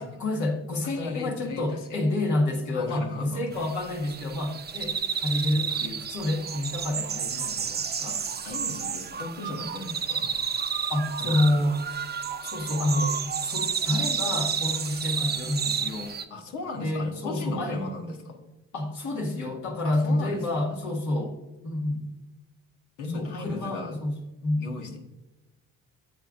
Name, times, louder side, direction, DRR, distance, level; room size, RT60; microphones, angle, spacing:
voice 1, 0.0-8.2 10.9-11.8 12.4-16.2 16.8-17.8 18.7-21.4 21.6-22.0 23.1-24.1 24.4-24.7, left 1 dB, 75° left, -1 dB, 2.0 m, -28 dB
voice 2, 0.8-2.0 2.7-3.4 5.7-5.9 8.4-10.3 11.2-11.6 16.3-18.4 19.8-20.8 23.0-24.0 24.6-25.0, left 2 dB, 90° left, 2 dB, 1.4 m, -36 dB
sound 1, 3.5-16.2, right 6 dB, 35° right, 0.6 m, -31 dB
10.0 x 7.9 x 2.5 m, 1.1 s
cardioid pair, 90°, 30 cm